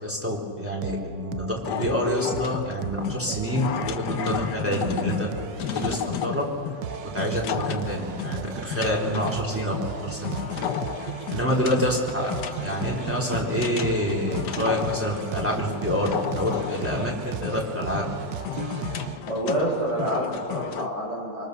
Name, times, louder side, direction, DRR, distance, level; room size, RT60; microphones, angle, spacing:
voice 1, 0.0-5.3 5.7-6.4 7.1-10.3 11.3-12.3 12.6-18.0, equal, 5° right, -3 dB, 3.4 m, -27 dB
sound 1, 0.7-19.2, right 10 dB, 80° right, 1.4 m, -36 dB
sound 2, 1.6-20.9, left 8 dB, 70° left, 1.5 m, -33 dB
voice 2, 19.2-21.5, right 1 dB, 35° right, -5 dB, 8.4 m, -27 dB
24.5 x 23.5 x 6.7 m, 2.3 s
omnidirectional pair, 1.9 m